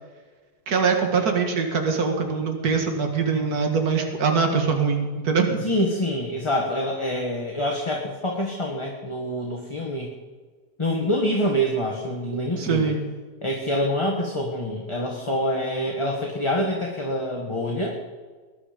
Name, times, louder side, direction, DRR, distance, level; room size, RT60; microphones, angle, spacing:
voice 1, 0.7-5.7 12.6-13.0, right 5 dB, 65° right, 4 dB, 2.3 m, -23 dB
voice 2, 5.6-10.1 10.8-12.9 13.4-18.0, equal, 20° left, 0 dB, 1.6 m, -26 dB
20.5 x 11.0 x 5.2 m, 1.4 s
omnidirectional pair, 1.8 m